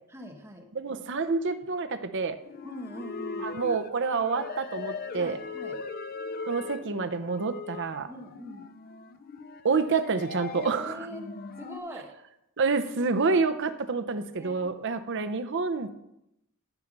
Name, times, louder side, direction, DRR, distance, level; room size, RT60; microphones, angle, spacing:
voice 1, 0.1-0.7 2.6-3.5 5.1-5.8 8.1-8.7 10.5-12.1 14.3-14.7, left 1 dB, 10° right, 1 dB, 1.4 m, -42 dB
voice 2, 0.7-2.4 3.4-5.4 6.5-8.1 9.6-11.0 12.6-15.9, right 4 dB, 55° right, 10 dB, 0.8 m, -28 dB
sound 1, 2.4-11.8, left 4 dB, 45° left, 0.5 m, -40 dB
11.5 x 5.8 x 5.3 m, 0.82 s
head